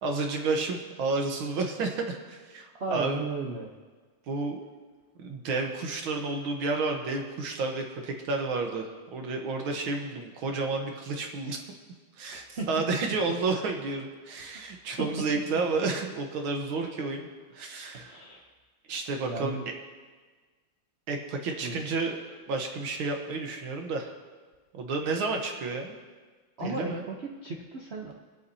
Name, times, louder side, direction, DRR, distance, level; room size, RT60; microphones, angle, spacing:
voice 1, 0.0-3.2 4.3-4.6 5.2-11.6 12.2-18.2 18.9-19.6 21.1-22.2 22.5-24.2 24.7-26.0 26.6-27.0, right 3 dB, 70° right, 3 dB, 1.8 m, -31 dB
voice 2, 2.7-3.7 12.3-12.7 15.0-15.1 17.9-18.5 19.2-19.7 21.6-21.8 26.6-28.1, right 3 dB, 90° right, 1 dB, 0.5 m, -35 dB
23.5 x 8.4 x 2.8 m, 1.4 s
omnidirectional pair, 2.4 m